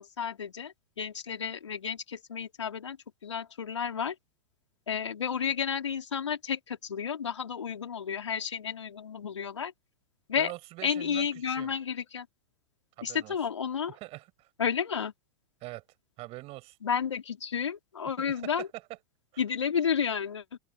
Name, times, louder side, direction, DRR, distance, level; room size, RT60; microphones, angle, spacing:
voice 1, 0.0-3.0 3.2-4.2 4.9-9.7 10.3-10.5 10.8-12.3 13.0-14.0 14.6-15.1 16.8-18.7 19.4-20.6, left 7 dB, 80° left, 4.3 m, -31 dB
voice 2, 10.4-11.7 13.0-13.3 13.9-14.5 15.6-15.8 16.2-16.8 18.2-18.7 19.3-19.4, right 20 dB, 40° right, 7.5 m, -43 dB
open air
figure-of-eight pair, 100°, 15 cm